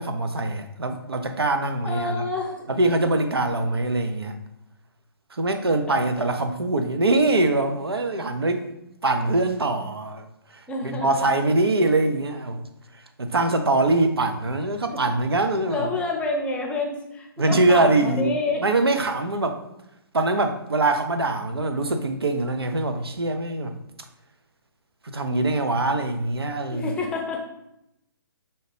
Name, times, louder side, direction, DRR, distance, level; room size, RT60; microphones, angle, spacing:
voice 1, 0.0-2.2 2.7-4.3 5.3-8.6 9.0-10.3 10.5-12.6 13.2-15.9 17.4-18.3 18.6-19.6 20.1-23.7 25.1-26.9, right 2 dB, 90° right, 0.6 m, -23 dB
voice 2, 1.8-2.7 5.9-6.3 10.7-11.3 14.9-15.0 15.7-18.7 26.7-27.5, left 3 dB, 10° left, 0.5 m, -29 dB
5.5 x 2.8 x 3.4 m
figure-of-eight pair, 135°, 12 cm